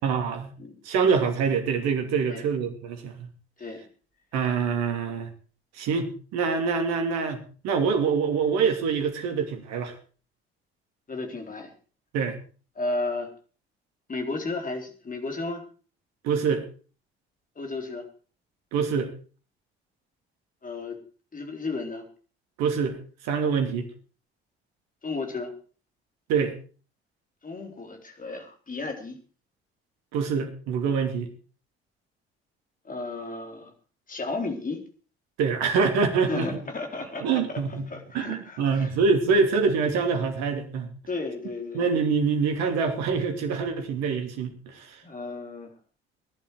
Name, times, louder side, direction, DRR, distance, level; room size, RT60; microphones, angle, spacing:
voice 1, 0.0-0.5 0.8-3.3 4.3-5.3 5.8-9.9 12.1-12.4 16.2-16.6 18.7-19.1 22.6-23.0 23.2-23.9 26.3-26.6 30.1-31.3 35.4-36.5 37.2-37.9 38.1-40.9 41.7-45.0, right 5 dB, 60° right, 6 dB, 2.8 m, -25 dB
voice 2, 11.1-11.7 12.8-13.3 14.1-15.6 17.6-18.1 20.6-21.0 21.3-22.1 25.0-25.5 27.4-29.2 32.8-33.7 34.1-34.8 36.3-37.6 37.9-38.9 41.1-41.9 45.0-45.7, left 3 dB, 25° left, 4 dB, 3.8 m, -33 dB
19.0 x 11.5 x 4.8 m, 0.39 s
figure-of-eight pair, 50°, 31 cm